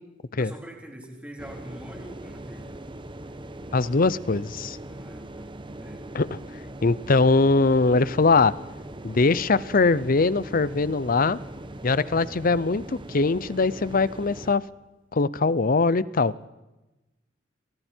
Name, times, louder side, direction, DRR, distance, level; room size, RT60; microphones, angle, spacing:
voice 1, 0.3-2.7 4.9-6.0 12.0-12.5, equal, 5° right, 0 dB, 3.8 m, -44 dB
sound 1, 1.4-14.6, right 1 dB, 25° right, 1.2 m, -41 dB
voice 2, 3.7-4.8 6.1-6.3 6.8-8.5 9.0-11.4 11.8-14.6 15.1-16.5, left 3 dB, 45° left, 18 dB, 0.7 m, -21 dB
29.0 x 24.0 x 4.5 m, 1.0 s
head